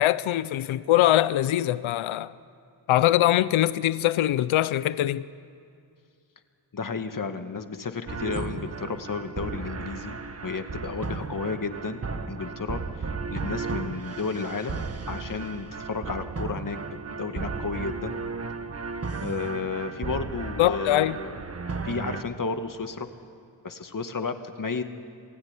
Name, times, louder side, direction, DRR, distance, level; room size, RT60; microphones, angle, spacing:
voice 1, 0.0-2.3 2.9-5.3 20.6-21.2, left 13 dB, 85° left, 0.7 m, -22 dB
voice 2, 6.7-16.8 17.2-18.2 19.2-21.4 21.8-23.1 23.6-24.8, left 4 dB, 45° left, 2.1 m, -32 dB
sound 1, 8.1-22.2, right 4 dB, 30° right, 1.6 m, -35 dB
27.5 x 16.5 x 9.9 m
cardioid pair, 70°, 47 cm